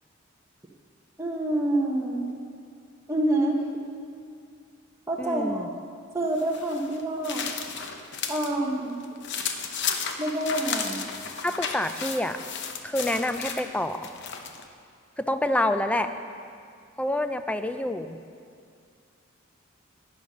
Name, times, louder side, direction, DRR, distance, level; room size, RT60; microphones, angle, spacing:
voice 1, 1.2-2.3 3.1-3.6 5.1-5.6 6.1-7.5 8.3-9.0 10.2-11.0, right 1 dB, 15° right, -2 dB, 0.8 m, -27 dB
voice 2, 5.2-5.7 11.4-12.4 12.8-14.1 15.2-16.1 17.0-18.2, left 1 dB, 5° left, 9 dB, 0.4 m, -27 dB
sound 1, 6.4-8.5 8.9-14.7, left 6 dB, 60° left, 0.8 m, -33 dB
11.0 x 9.7 x 5.5 m, 2.3 s
head